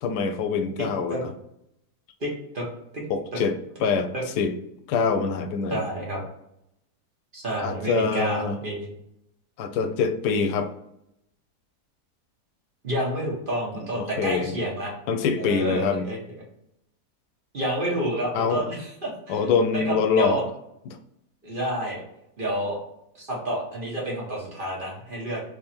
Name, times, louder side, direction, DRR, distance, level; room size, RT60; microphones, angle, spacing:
voice 1, 0.0-1.3 3.1-3.5 3.8-4.5 4.9-5.8 7.6-8.6 9.6-10.7 13.9-14.6 15.1-16.1 18.3-18.6 19.3-20.4 20.9-21.0, left 5 dB, 90° left, 8 dB, 1.2 m, -24 dB
voice 2, 2.2-2.6 2.9-3.0 4.1-4.2 5.7-6.2 7.3-8.9 12.8-14.9 15.4-16.2 17.5-20.4 21.4-22.0 22.4-22.8 23.1-25.4, right 1 dB, 35° right, -3 dB, 1.1 m, -29 dB
3.5 x 3.1 x 4.3 m, 0.78 s
omnidirectional pair, 1.7 m